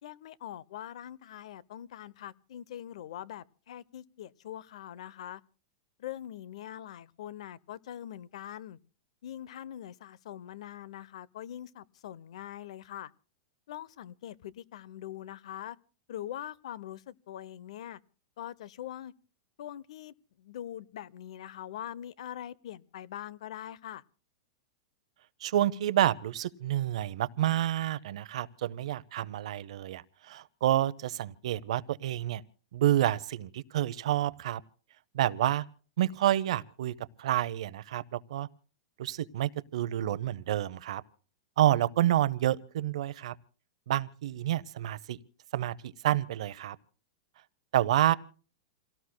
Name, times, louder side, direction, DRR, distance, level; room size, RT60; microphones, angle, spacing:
voice 1, 0.0-5.4 6.0-8.8 9.2-13.1 13.7-15.8 16.1-18.0 18.4-19.1 19.6-24.0, left 11 dB, 75° left, 0.7 m, -43 dB
voice 2, 25.4-32.4 32.7-34.6 35.1-35.6 36.0-38.5 39.0-41.0 41.6-43.3 43.9-45.2 45.5-46.8 47.7-48.1, right 12 dB, 70° right, 0.7 m, -29 dB
28.5 x 17.5 x 2.2 m
supercardioid pair, 150°, 3 cm